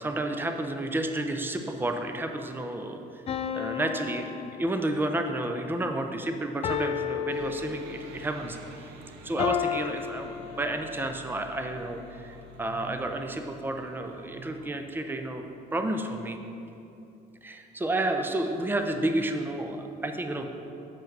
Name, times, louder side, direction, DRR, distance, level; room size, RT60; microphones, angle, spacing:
voice 1, 0.0-3.2 3.5-4.3 4.6-8.6 9.2-16.4 17.4-20.5, right 1 dB, 10° right, 5 dB, 0.6 m, -31 dB
sound 1, 3.3-5.1 6.6-8.3 9.4-11.1, left 9 dB, 35° left, 0.4 m, -33 dB
sound 2, 7.3-14.7, right 2 dB, 85° right, 0.8 m, -48 dB
7.4 x 5.4 x 5.2 m, 2.8 s
cardioid pair, 110°, 17 cm